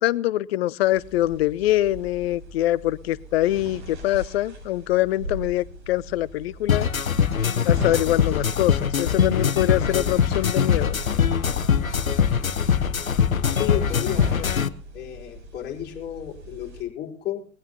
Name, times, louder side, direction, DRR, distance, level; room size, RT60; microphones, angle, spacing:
voice 1, 0.0-6.9 7.6-11.0, left 15 dB, 50° left, 20 dB, 0.6 m, -24 dB
sound 1, 0.9-16.8, right 1 dB, 55° right, 7.4 m, -41 dB
sound 2, 6.7-14.7, left 7 dB, 85° left, 1.0 m, -22 dB
voice 2, 13.6-14.5 14.9-17.4, left 10 dB, 25° left, -2 dB, 4.2 m, -32 dB
21.0 x 15.0 x 2.8 m, 0.43 s
figure-of-eight pair, 105°, 41 cm